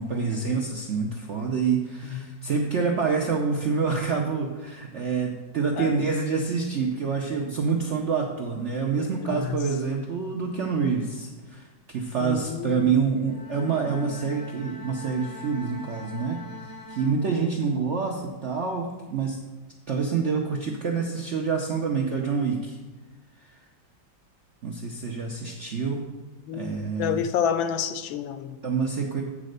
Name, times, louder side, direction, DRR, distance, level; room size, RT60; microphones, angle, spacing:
voice 1, 0.0-16.4 16.9-19.4 19.9-22.8 24.6-26.1 26.5-27.2 28.6-29.2, right 5 dB, 75° right, 1 dB, 0.6 m, -27 dB
voice 2, 9.2-9.6 12.2-12.9 17.4-17.5 26.5-28.6, left 8 dB, 80° left, 10 dB, 1.3 m, -29 dB
Bowed string instrument, 13.2-17.8, left 2 dB, 25° left, 0.4 m, -43 dB
8.7 x 4.1 x 6.5 m, 1.2 s
omnidirectional pair, 2.1 m